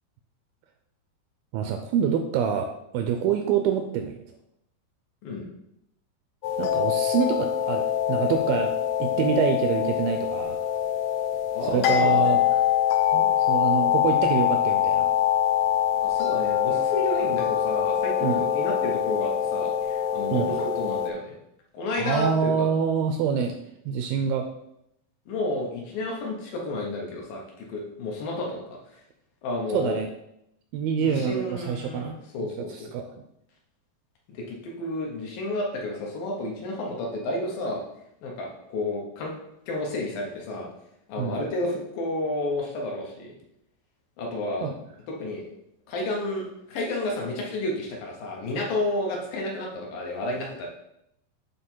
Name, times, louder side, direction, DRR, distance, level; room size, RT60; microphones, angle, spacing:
voice 1, 1.5-4.2 6.6-8.7 9.0-10.7 11.6-12.6 13.1-15.1 18.2-18.4 20.3-20.6 22.0-23.6 23.9-24.5 29.7-30.1 30.7-32.2 32.6-33.2 41.2-41.4 44.6-44.8, right 7 dB, 80° right, 6 dB, 2.2 m, -26 dB
Wind Chimes, 6.4-21.1, left 10 dB, 85° left, 2.8 m, -24 dB
voice 2, 11.5-12.4 16.0-21.4 21.7-22.7 25.3-28.6 28.9-29.0 29.4-30.0 31.0-32.9 34.3-37.8 38.2-39.3 39.7-40.7 41.1-43.3 44.2-44.7 45.1-45.5 45.9-50.7, left 1 dB, 70° left, -1 dB, 2.6 m, -31 dB
8.6 x 3.3 x 4.5 m, 0.79 s
omnidirectional pair, 4.5 m